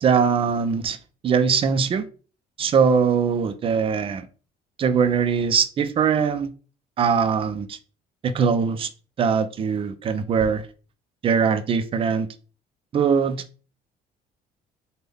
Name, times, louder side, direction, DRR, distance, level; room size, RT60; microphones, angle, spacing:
voice 1, 0.0-1.0 1.2-2.1 2.6-4.3 4.8-6.5 7.0-7.8 8.2-8.9 9.2-10.7 11.2-12.3 12.9-13.4, right 6 dB, 35° right, 0.4 m, -21 dB
3.4 x 2.1 x 3.3 m
cardioid pair, 110°, 17 cm